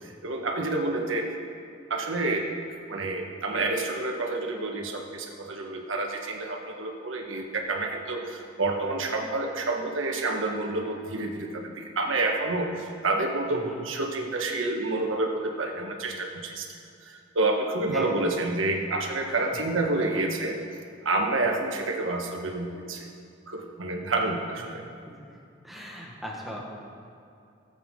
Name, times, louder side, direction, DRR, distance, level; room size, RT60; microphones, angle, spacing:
voice 1, 0.2-1.4 1.9-2.5 2.9-16.7 17.0-20.6 21.0-23.1 23.5-24.8, right 2 dB, 85° right, 1 dB, 1.5 m, -29 dB
voice 2, 17.9-18.3 19.2-19.4 19.9-20.2 21.4-21.5 25.6-26.6, equal, ahead, -3 dB, 1.5 m, -39 dB
18.0 x 8.3 x 3.8 m, 2.6 s
head